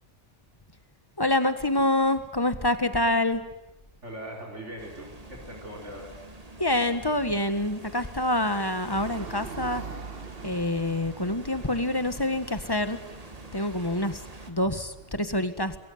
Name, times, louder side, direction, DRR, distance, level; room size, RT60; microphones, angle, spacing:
voice 1, 1.2-3.4 6.6-9.8 10.4-13.0 13.5-14.2 14.5-15.8, left 1 dB, 20° left, 10 dB, 1.7 m, -26 dB
voice 2, 4.0-6.1, right 1 dB, 75° right, -1 dB, 4.9 m, -40 dB
sound 1, 4.8-14.5, right 2 dB, 30° right, 2.2 m, -46 dB
sound 2, 8.9-15.1, right 5 dB, 50° right, 1.6 m, -44 dB
27.5 x 22.0 x 9.5 m, 0.90 s
omnidirectional pair, 1.2 m